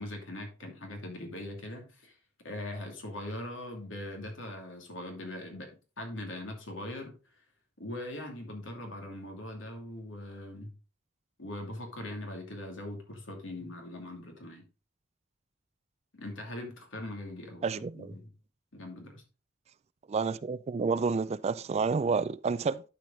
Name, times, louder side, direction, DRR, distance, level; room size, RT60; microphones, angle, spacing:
voice 1, 0.0-2.2 2.4-7.2 7.8-10.7 11.4-14.6 16.1-17.6 17.9-18.3 18.7-19.2, left 1 dB, 85° left, 2.7 m, -41 dB
voice 2, 17.6-18.1 20.1-22.8, right 4 dB, 35° right, 0.3 m, -29 dB
11.5 x 5.0 x 3.9 m
head